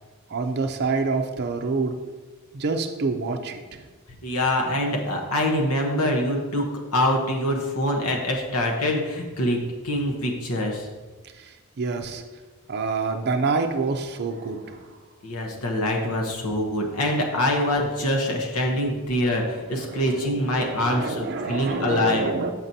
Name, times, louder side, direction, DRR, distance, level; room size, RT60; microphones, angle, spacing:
voice 1, 0.3-2.1 2.5-3.9 11.4-12.2 12.7-15.0 19.7-22.5, right 4 dB, 50° right, 5 dB, 0.5 m, -27 dB
voice 2, 4.2-10.9 15.2-22.3, left 1 dB, 70° left, 1 dB, 1.0 m, -24 dB
7.4 x 5.9 x 2.7 m, 1.3 s
head